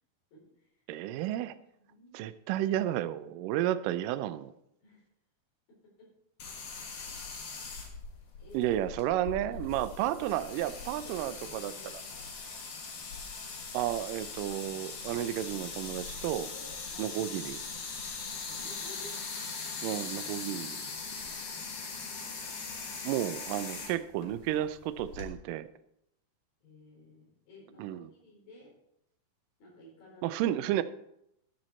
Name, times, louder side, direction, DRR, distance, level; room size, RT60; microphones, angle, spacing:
voice 1, 0.3-0.8 1.8-2.2 4.8-5.1 5.7-6.1 7.0-7.4 8.4-9.7 10.1-12.3 16.5-17.4 18.5-19.3 21.1-21.9 26.6-28.7 29.6-30.4, left 2 dB, 75° left, -3 dB, 6.2 m, -54 dB
voice 2, 0.9-1.6 2.1-4.5 8.5-11.7 13.7-16.5 17.0-17.6 19.8-20.9 23.0-25.7 27.8-28.1 30.2-30.8, right 13 dB, 85° right, 13 dB, 1.9 m, -32 dB
sound 1, 6.4-25.3, left 4 dB, 55° left, 2.1 m, -41 dB
12.5 x 7.6 x 4.3 m, 0.78 s
omnidirectional pair, 4.3 m